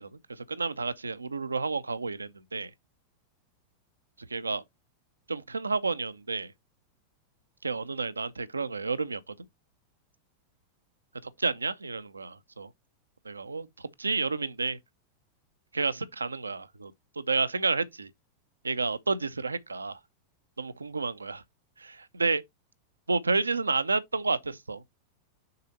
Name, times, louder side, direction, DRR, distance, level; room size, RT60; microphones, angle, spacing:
voice 1, 0.0-2.7 4.3-4.6 5.3-6.5 7.6-9.2 11.2-12.7 13.2-14.8 15.7-18.1 18.6-20.0 20.6-21.4 21.8-22.4 23.1-25.0, right 4 dB, 80° right, 0.6 m, -30 dB
6.7 x 4.1 x 3.9 m
figure-of-eight pair, 90°, 0 cm